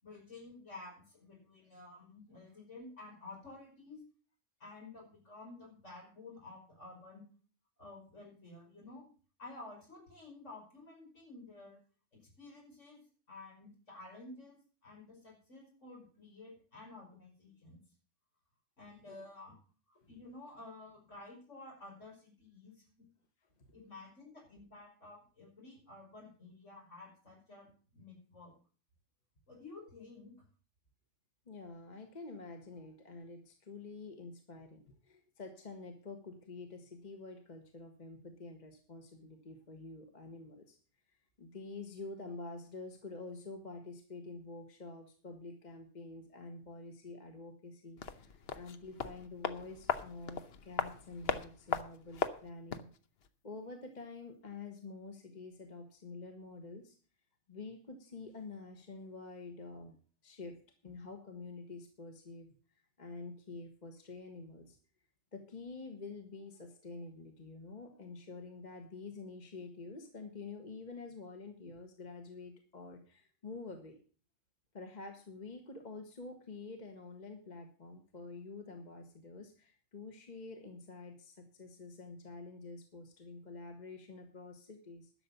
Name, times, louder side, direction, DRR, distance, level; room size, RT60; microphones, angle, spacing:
voice 1, 0.0-4.0 4.6-7.3 7.8-9.0 9.4-11.8 12.4-13.0 13.3-17.8 18.8-19.6 19.9-22.8 23.7-28.5 29.5-30.3, left 2 dB, 70° left, -1 dB, 5.8 m, -52 dB
voice 2, 31.5-40.8 41.4-52.9 53.4-57.0 57.5-59.9 60.2-62.5 63.0-64.8 65.3-74.0 74.7-85.1, left 3 dB, 35° left, 5 dB, 1.5 m, -48 dB
sound 1, 48.0-53.0 53.2-53.3, left 6 dB, 55° left, 1.0 m, -38 dB
12.0 x 6.9 x 7.0 m, 0.41 s
omnidirectional pair, 1.3 m